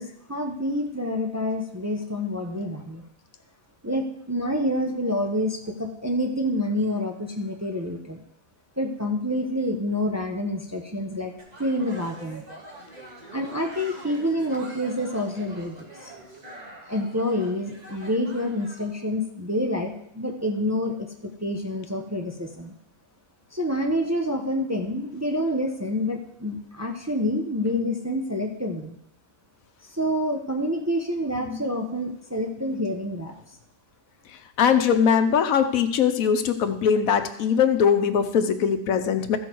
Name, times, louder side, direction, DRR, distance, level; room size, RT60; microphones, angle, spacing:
voice 1, 0.0-3.0 3.8-8.2 8.8-11.3 11.6-12.4 13.3-16.1 16.9-22.7 23.5-29.0 29.8-33.3, left 1 dB, 15° right, 2 dB, 0.7 m, -27 dB
sound 1, 11.4-18.9, right 1 dB, 30° right, 1.8 m, -44 dB
voice 2, 34.6-39.4, left 7 dB, 80° left, 8 dB, 1.2 m, -21 dB
14.5 x 6.2 x 4.6 m, 0.75 s
omnidirectional pair, 1.4 m